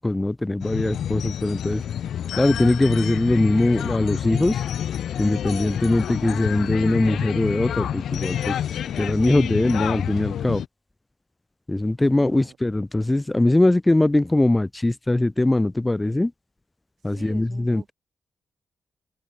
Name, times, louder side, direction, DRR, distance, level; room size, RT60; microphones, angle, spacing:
voice 1, 0.0-1.8 2.4-4.6 5.2-8.6 9.0-10.6 11.7-16.3 17.0-17.9, left 2 dB, 15° left, 0.5 m, -21 dB
sound 1, 0.6-10.7, left 9 dB, 85° left, 0.5 m, -28 dB
voice 2, 12.1-12.6 17.0-17.9, right 7 dB, 65° right, 7.1 m, -46 dB
open air
cardioid pair, 95°, 0 cm